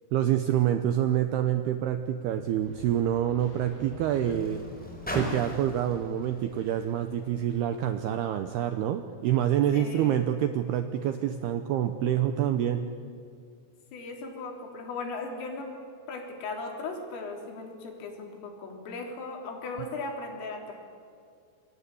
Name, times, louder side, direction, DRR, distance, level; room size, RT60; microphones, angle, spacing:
voice 1, 0.1-4.6 5.1-12.9, right 11 dB, 85° right, 8 dB, 2.3 m, -27 dB
Car, 1.8-8.0 8.9-9.0, equal, ahead, 4.3 m, -41 dB
sound 1, 2.6-9.6, right 2 dB, 55° right, 9.7 m, -53 dB
voice 2, 9.7-10.3 13.9-15.7 16.1-20.7, left 3 dB, 85° left, 1 dB, 6.2 m, -37 dB
sound 2, 9.9-13.1, left 4 dB, 40° left, 4.6 m, -52 dB
27.5 x 22.0 x 8.5 m, 2.3 s
omnidirectional pair, 5.7 m